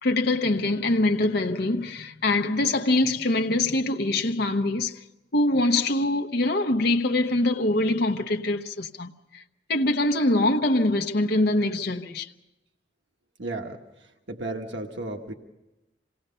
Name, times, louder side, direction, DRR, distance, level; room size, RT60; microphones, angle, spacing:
voice 1, 0.0-5.0 5.3-9.4 9.7-12.3, left 2 dB, 60° left, 0.8 m, -24 dB
voice 2, 13.4-15.3, right 2 dB, 85° right, 1.3 m, -34 dB
26.5 x 18.0 x 5.6 m
head